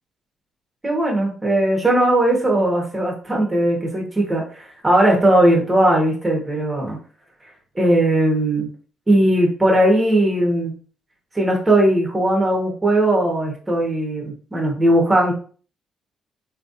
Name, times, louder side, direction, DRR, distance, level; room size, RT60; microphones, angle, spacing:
voice 1, 0.8-7.0 7.7-8.7 9.1-10.7 11.3-15.3, right 1 dB, 20° right, -1 dB, 1.5 m, -18 dB
3.4 x 3.2 x 2.7 m, 0.41 s
cardioid pair, 90°, 0 cm